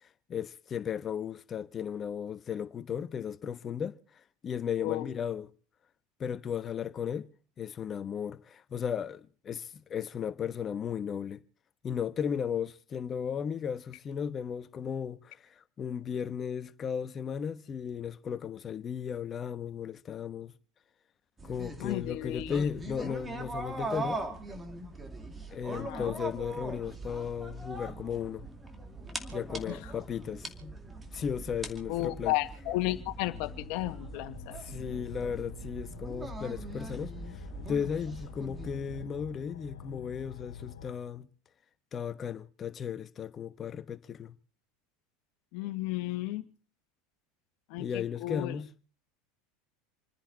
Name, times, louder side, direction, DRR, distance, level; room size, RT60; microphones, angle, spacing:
voice 1, 0.3-4.0 4.4-5.5 6.2-7.3 7.6-11.4 11.8-20.5 21.4-24.2 25.5-28.5 29.3-30.8 31.1-32.3 34.7-37.4 37.7-41.3 41.9-44.3 47.8-48.7, left 7 dB, 35° left, 1.2 m, -35 dB
sound 1, 21.4-39.0, right 2 dB, 20° right, 2.5 m, -41 dB
voice 2, 21.8-22.6 25.7-26.2 29.6-29.9 31.9-34.7 45.5-46.4 47.7-48.6, left 17 dB, 65° left, 1.7 m, -34 dB
sound 2, 33.2-41.0, left 9 dB, 85° left, 1.4 m, -47 dB
28.5 x 10.0 x 4.1 m
hypercardioid pair, 100°, 0 cm